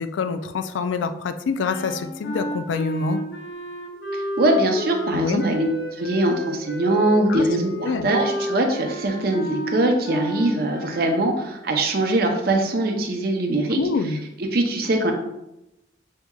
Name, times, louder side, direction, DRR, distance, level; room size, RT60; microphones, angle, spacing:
voice 1, 0.0-3.2 5.1-5.4 7.3-7.5 7.8-8.1 13.8-14.2, left 5 dB, 85° left, 9 dB, 0.3 m, -26 dB
sound 1, 1.6-11.2, right 1 dB, 65° left, 0.9 m, -32 dB
voice 2, 4.1-13.8 14.4-15.1, right 1 dB, 55° right, 3 dB, 0.6 m, -22 dB
5.8 x 2.7 x 2.3 m, 0.89 s
head